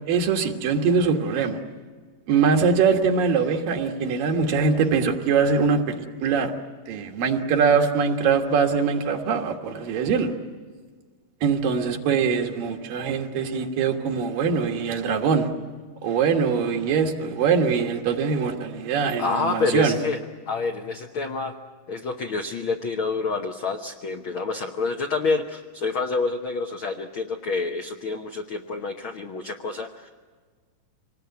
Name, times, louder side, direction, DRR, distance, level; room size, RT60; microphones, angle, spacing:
voice 1, 0.1-1.6 2.3-6.5 6.9-10.3 11.4-15.5 16.0-20.0, right 5 dB, 85° right, 3 dB, 3.3 m, -22 dB
voice 2, 19.2-20.2 20.5-21.6 21.9-30.1, left 4 dB, 85° left, 4 dB, 1.1 m, -28 dB
26.0 x 19.5 x 9.3 m, 1.5 s
omnidirectional pair, 3.8 m